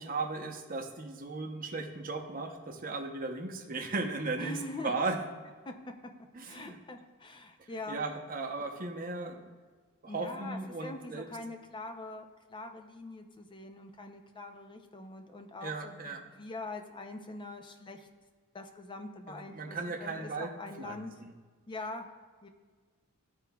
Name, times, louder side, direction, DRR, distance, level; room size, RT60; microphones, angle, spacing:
voice 1, 0.0-5.2 6.3-6.8 7.6-9.4 10.0-11.3 15.6-16.2 19.3-20.5 20.8-21.3, right 3 dB, 40° right, 3 dB, 0.7 m, -36 dB
voice 2, 4.4-4.9 5.7-5.8 6.5-8.0 10.1-18.1 18.5-21.1 21.7-22.1 22.4-22.5, left 2 dB, 20° left, 5 dB, 0.5 m, -43 dB
13.0 x 4.7 x 2.3 m, 1.5 s
head